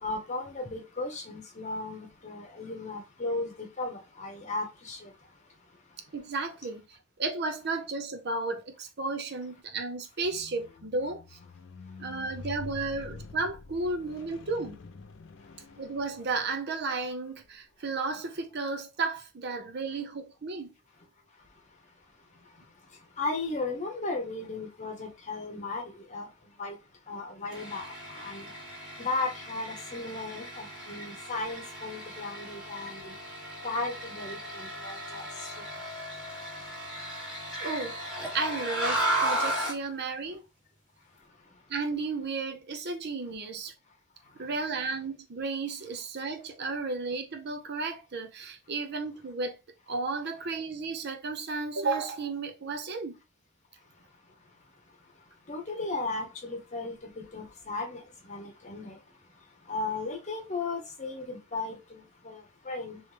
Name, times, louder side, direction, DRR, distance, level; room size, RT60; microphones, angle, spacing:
voice 1, 0.0-5.1 23.2-25.8 26.1-26.3 26.6-26.8 27.1-28.5 29.0-33.1 33.6-35.3 55.5-58.0 58.3-59.0 59.7-63.0, left 3 dB, 40° left, 0.9 m, -35 dB
voice 2, 6.1-6.8 7.2-11.4 12.0-14.8 15.8-20.7 37.6-37.9 38.3-40.4 41.7-43.7 44.4-49.6 49.9-53.2, right 3 dB, 55° right, 0.6 m, -33 dB
Squeak, 10.2-16.6 17.3-17.5, left 3 dB, 65° left, 0.4 m, -46 dB
sound 1, 27.5-39.8, right 1 dB, 5° right, 1.6 m, -35 dB
3.2 x 3.1 x 3.2 m
head